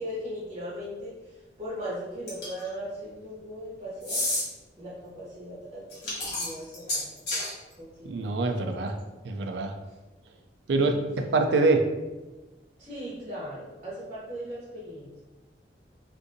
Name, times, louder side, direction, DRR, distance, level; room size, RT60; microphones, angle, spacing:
voice 1, 0.0-4.2 4.8-7.4 7.8-8.3 10.7-11.0 12.8-15.1, equal, 25° right, -7 dB, 0.8 m, -38 dB
sound 1, 2.3-2.7 4.0-4.4 5.9-7.5, left 2 dB, 70° left, 1.4 m, -29 dB
voice 2, 8.0-9.0 9.2-9.7 10.7-11.0 11.3-11.9, right 3 dB, 75° right, 5 dB, 0.4 m, -24 dB
3.6 x 2.6 x 2.6 m, 1.2 s
head